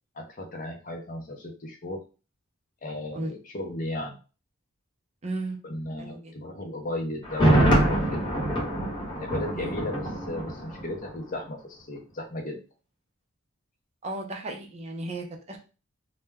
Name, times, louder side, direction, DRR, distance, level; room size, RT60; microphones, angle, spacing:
voice 1, 0.2-2.0 2.8-4.2 5.6-8.2 9.1-12.6, left 1 dB, 40° left, 2 dB, 0.5 m, -35 dB
voice 2, 5.2-5.6 6.0-6.2 9.6-9.8 14.0-15.6, right 2 dB, 30° right, 1 dB, 0.5 m, -34 dB
Thunder, 7.2-11.1 11.4-11.5, right 1 dB, 20° left, 0.9 m, -24 dB
2.2 x 2.1 x 3.3 m, 0.34 s
head